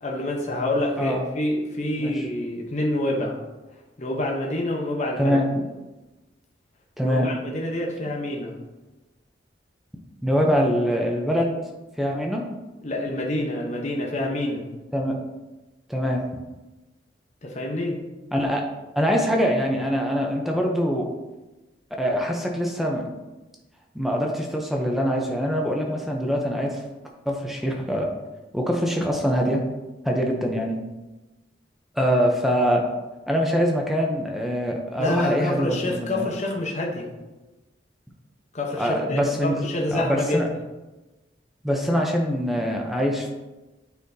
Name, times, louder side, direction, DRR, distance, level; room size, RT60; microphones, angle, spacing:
voice 1, 0.0-3.4 4.0-5.4 7.0-8.5 12.8-14.7 17.4-18.0 35.0-37.1 38.5-40.4, left 1 dB, 40° left, -1 dB, 0.9 m, -27 dB
voice 2, 7.0-7.3 10.2-11.5 12.0-12.5 14.9-15.2 15.9-16.2 18.3-18.6 19.0-21.1 22.0-23.0 23.9-26.8 27.3-28.1 28.5-29.6 30.0-30.8 31.9-32.8 33.3-36.2 38.8-40.5 41.6-43.3, equal, ahead, 0 dB, 0.6 m, -23 dB
9.2 x 4.1 x 2.7 m, 1.1 s
head